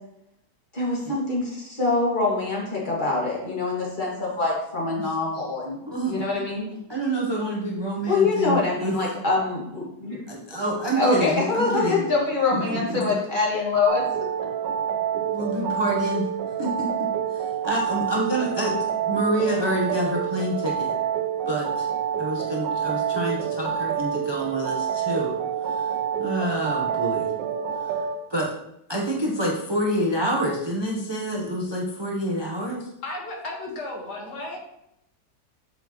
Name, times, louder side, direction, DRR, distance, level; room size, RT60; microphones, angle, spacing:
voice 1, 0.7-5.8 6.1-6.7 8.1-10.3 10.9-14.0, left 3 dB, 30° left, -5 dB, 2.0 m, -24 dB
voice 2, 5.9-6.4 6.9-9.0 10.3-12.1 12.5-13.1 15.3-16.3 16.6-20.9 21.5-21.9 22.2-25.9 26.2-27.3 27.8-27.9 28.3-28.5 28.9-32.8, right 1 dB, 30° right, -2 dB, 0.5 m, -27 dB
sound 1, 13.9-28.2, right 8 dB, 90° right, 1.3 m, -27 dB
voice 3, 33.0-34.6, left 2 dB, 70° left, -1 dB, 2.0 m, -34 dB
7.1 x 5.7 x 3.0 m, 0.80 s
omnidirectional pair, 1.9 m